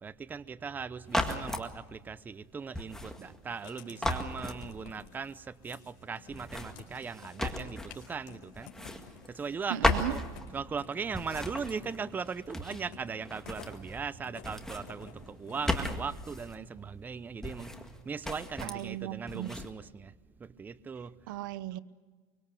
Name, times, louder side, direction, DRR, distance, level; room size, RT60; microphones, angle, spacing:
voice 1, 0.0-8.7 9.3-17.7 18.0-20.1 20.4-21.2, right 5 dB, 15° right, 0.7 m, -39 dB
sound 1, 1.1-1.7 2.7-3.7 4.0-5.1 6.3-8.2 8.5-9.6 9.8-10.8 11.1-12.9 13.2-14.1 14.4-16.6 17.4-18.0 18.2-18.9 19.3-19.7, left 1 dB, 5° left, 2.0 m, -35 dB
Writing, 3.4-16.0, left 8 dB, 75° left, 4.4 m, -54 dB
voice 2, 9.7-10.2 18.6-19.6 21.3-21.8, right 13 dB, 90° right, 0.9 m, -36 dB
24.5 x 24.0 x 6.9 m
supercardioid pair, 140°, 10 cm